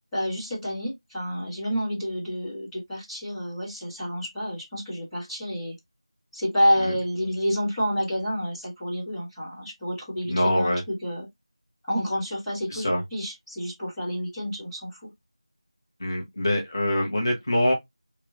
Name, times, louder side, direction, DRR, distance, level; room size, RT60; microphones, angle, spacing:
voice 1, 0.1-5.8 6.3-11.3 11.9-15.1, equal, 5° left, 1.6 m, -29 dB
voice 2, 10.3-10.8 12.7-13.0 16.0-17.7, left 1 dB, 45° left, 1.0 m, -24 dB
3.6 x 2.8 x 2.5 m
figure-of-eight pair, 170°, 3 cm